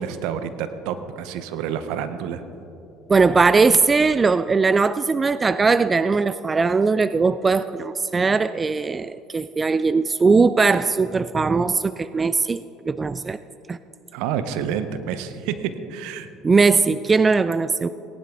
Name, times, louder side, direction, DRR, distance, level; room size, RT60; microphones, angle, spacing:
voice 1, 0.0-2.4 14.1-16.3, right 8 dB, 70° right, 11 dB, 0.8 m, -28 dB
voice 2, 3.1-13.4 13.7-13.8 16.4-17.9, right 4 dB, 25° right, 15 dB, 0.3 m, -19 dB
18.0 x 10.5 x 3.6 m, 2.8 s
hypercardioid pair, 70°, 0 cm